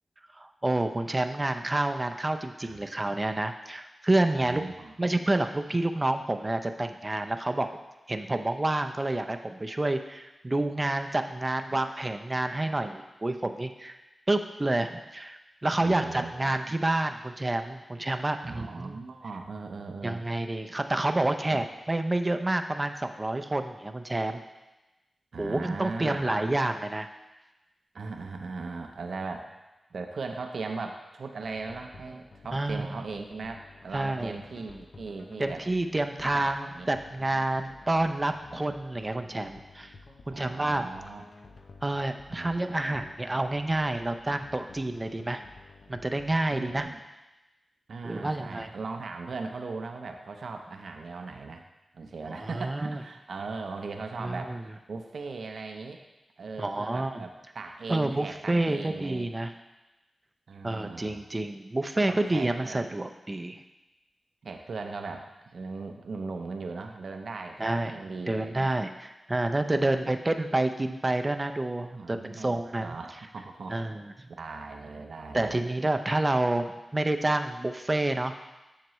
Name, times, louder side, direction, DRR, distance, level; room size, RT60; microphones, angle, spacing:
voice 1, 0.4-4.6 5.0-7.7 8.1-14.0 14.3-19.0 20.0-24.4 25.4-27.1 32.5-33.0 33.9-34.4 35.4-39.9 40.3-40.9 41.8-45.4 45.9-46.9 48.0-48.7 52.3-53.0 54.2-54.6 56.6-57.2 57.9-59.5 60.6-63.6 67.6-73.0 73.7-74.1 75.3-78.4, right 2 dB, 25° right, 7 dB, 0.5 m, -29 dB
voice 2, 4.4-4.9 11.7-11.8 15.8-16.5 18.4-20.2 21.5-21.6 25.3-26.2 27.9-29.5 29.9-35.6 36.2-36.9 40.2-41.2 42.3-43.0 44.3-44.4 46.5-47.0 47.9-51.6 51.9-54.6 54.9-56.0 56.4-59.3 60.5-61.2 62.0-62.8 64.4-65.2 65.5-68.7 69.7-70.1 71.9-73.8 74.3-75.6, right 4 dB, 75° right, 5 dB, 0.6 m, -39 dB
sound 1, 31.4-46.8, left 3 dB, 60° left, 0.7 m, -51 dB
7.6 x 6.6 x 3.1 m, 1.0 s
cardioid pair, 60°, 0 cm